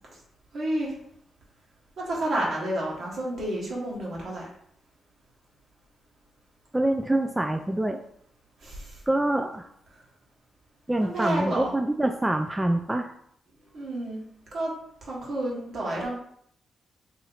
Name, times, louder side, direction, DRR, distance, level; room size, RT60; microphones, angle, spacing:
voice 1, 0.5-0.9 2.0-4.5 8.6-9.0 11.0-11.7 13.7-14.2 14.5-14.7 15.0-16.2, right 1 dB, 65° right, -4 dB, 1.5 m, -30 dB
voice 2, 6.7-8.0 9.1-9.7 10.9-13.1, right 1 dB, 15° right, 4 dB, 0.3 m, -25 dB
3.1 x 2.8 x 3.8 m, 0.69 s
supercardioid pair, 45°, 0 cm